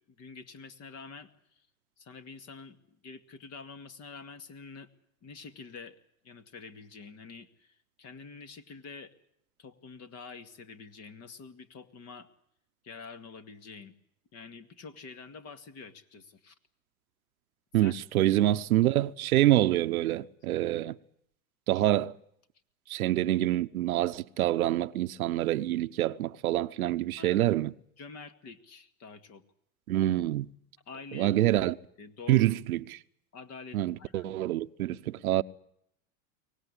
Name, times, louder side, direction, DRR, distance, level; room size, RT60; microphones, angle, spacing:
voice 1, 0.1-1.6 2.0-2.8 3.0-4.9 5.2-6.0 6.2-9.1 9.6-12.3 12.8-13.9 14.3-16.5 17.8-18.3 27.2-27.5 28.0-29.4 30.9-31.6 32.0-32.6 33.3-34.3, left 4 dB, 35° left, 2.2 m, -47 dB
voice 2, 17.7-20.9 21.7-22.1 22.9-27.7 29.9-30.5 31.1-31.7 32.3-33.0 33.7-35.4, right 14 dB, 90° right, 1.0 m, -26 dB
23.5 x 18.5 x 9.9 m
supercardioid pair, 115°, 42 cm